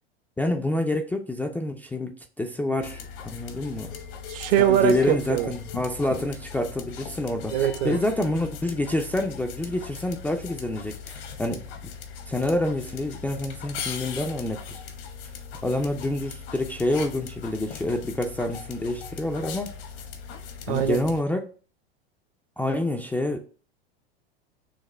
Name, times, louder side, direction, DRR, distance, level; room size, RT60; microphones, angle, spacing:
voice 1, 0.4-3.9 4.6-11.9 12.3-14.8 15.6-19.7 20.7-21.5 22.6-23.4, left 1 dB, 5° left, 0.3 m, -27 dB
sound 1, 2.8-21.2, left 6 dB, 65° left, 0.9 m, -39 dB
voice 2, 4.3-5.5 7.5-8.0 20.7-21.0, right 10 dB, 65° right, 0.8 m, -22 dB
6.5 x 2.3 x 3.1 m
hypercardioid pair, 95°, 31 cm